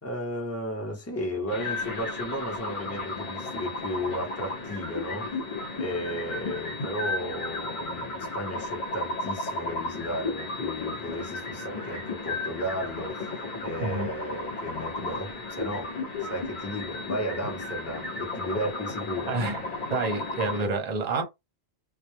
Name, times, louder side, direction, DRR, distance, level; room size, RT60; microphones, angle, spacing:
voice 1, 0.0-5.4 5.8-13.3 13.6-15.9 16.2-19.3, equal, 20° left, 0.6 m, -34 dB
sound 1, 1.5-20.7, left 2 dB, 50° left, 1.0 m, -34 dB
voice 2, 19.3-19.6 19.9-21.2, right 3 dB, 45° right, 0.7 m, -28 dB
2.1 x 2.0 x 3.0 m
omnidirectional pair, 1.1 m